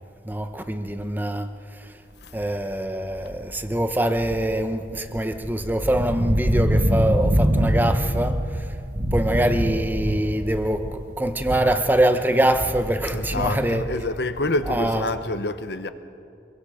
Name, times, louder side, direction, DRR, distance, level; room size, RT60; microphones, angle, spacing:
voice 1, 0.2-1.5 2.3-8.7 9.1-13.9 14.7-15.0, right 1 dB, 10° right, 1.0 m, -24 dB
sound 1, 2.3-2.6 3.1-11.9 12.2-15.1, equal, 40° right, 1.7 m, -25 dB
voice 2, 13.1-15.9, left 2 dB, 65° left, 1.2 m, -27 dB
25.5 x 23.0 x 5.1 m
head